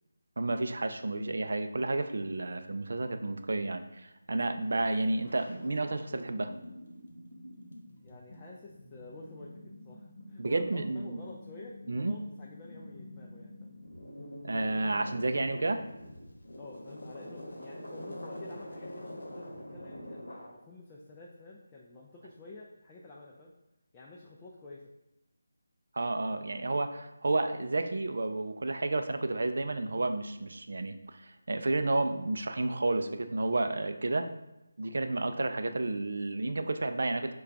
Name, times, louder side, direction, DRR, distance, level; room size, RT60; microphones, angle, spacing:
voice 1, 0.4-6.5 10.4-11.2 11.9-12.1 14.4-15.8 25.9-34.3 34.8-37.3, right 2 dB, 60° right, 8 dB, 0.3 m, -31 dB
sound 1, 4.7-4.8 5.0-20.5, left 1 dB, 70° left, 0.9 m, -46 dB
voice 2, 8.0-13.8 16.6-23.5 23.9-24.9, left 2 dB, 15° left, -4 dB, 0.3 m, -50 dB
5.5 x 2.2 x 2.5 m, 0.93 s
figure-of-eight pair, 155°, 0 cm